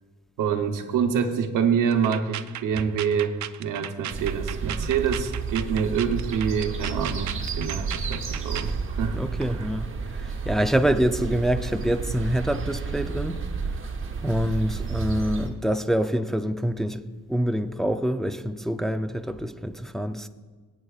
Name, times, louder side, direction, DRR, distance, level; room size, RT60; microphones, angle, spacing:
voice 1, 0.4-9.2 9.5-9.7 14.8-14.9, right 7 dB, 90° right, 1.0 m, -26 dB
sound 1, 1.9-8.8, right 11 dB, 65° right, 0.4 m, -36 dB
sound 2, 4.1-15.5, right 5 dB, 45° right, 1.2 m, -31 dB
voice 2, 9.1-13.4 14.2-17.0 17.3-20.3, equal, ahead, 0.4 m, -26 dB
23.0 x 8.6 x 2.4 m
cardioid pair, 110°, 31 cm